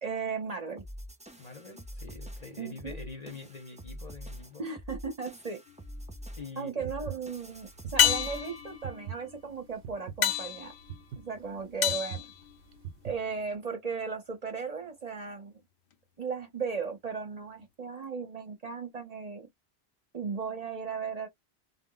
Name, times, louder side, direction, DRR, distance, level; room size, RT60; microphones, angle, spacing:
voice 1, 0.0-0.8 2.6-3.0 4.6-5.6 6.6-10.7 11.2-12.3 13.0-15.5 16.2-19.5 20.1-21.3, right 5 dB, 45° right, 0.7 m, -36 dB
sound 1, 0.8-8.7, equal, 10° right, 0.4 m, -45 dB
voice 2, 1.4-4.7 6.4-7.1, left 4 dB, 45° left, 0.8 m, -45 dB
sound 2, 5.7-6.3 8.0-13.1 17.6-17.7, left 10 dB, 80° left, 0.9 m, -31 dB
sound 3, 6.8-13.5, right 8 dB, 90° right, 0.8 m, -43 dB
2.0 x 2.0 x 3.7 m
omnidirectional pair, 1.1 m